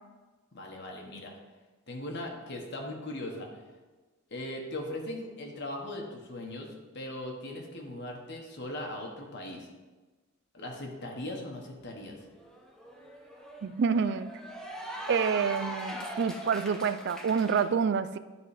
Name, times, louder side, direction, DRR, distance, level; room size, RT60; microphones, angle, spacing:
voice 1, 0.5-1.3 1.9-3.6 4.3-9.7 10.5-12.2, left 1 dB, 55° left, 1 dB, 1.3 m, -39 dB
Cheering / Applause, 12.2-17.6, equal, 5° left, 0.7 m, -41 dB
voice 2, 13.6-14.3 15.1-18.2, right 6 dB, 50° right, 13 dB, 0.3 m, -27 dB
11.5 x 4.0 x 4.9 m, 1.3 s
head